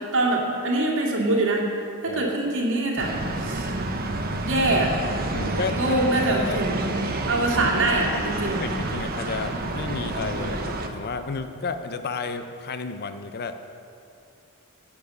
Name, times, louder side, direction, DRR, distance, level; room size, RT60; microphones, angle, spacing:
voice 1, 0.1-1.6 2.0-3.7 4.4-4.9 5.8-8.6, right 2 dB, 60° right, -2 dB, 2.2 m, -24 dB
sound 1, 3.0-10.9, right 2 dB, 45° right, 0.9 m, -29 dB
voice 2, 5.3-6.0 6.4-6.6 8.6-13.6, left 4 dB, 45° left, 9 dB, 0.6 m, -32 dB
17.5 x 7.2 x 5.4 m, 2.6 s
head